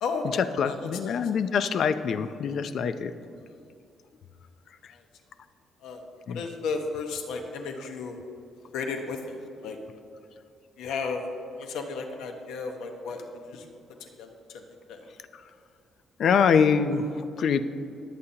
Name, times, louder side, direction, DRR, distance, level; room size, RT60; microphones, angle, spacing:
voice 1, 0.0-1.2 4.9-5.0 5.8-8.2 8.7-9.8 10.8-11.2 11.6-13.7 14.0-15.1, left 4 dB, 90° left, 4 dB, 1.2 m, -34 dB
voice 2, 0.6-3.1 6.3-6.4 16.2-17.6, left 6 dB, 55° left, 11 dB, 0.5 m, -24 dB
20.5 x 8.3 x 2.9 m, 2.5 s
cardioid pair, 135°, 0 cm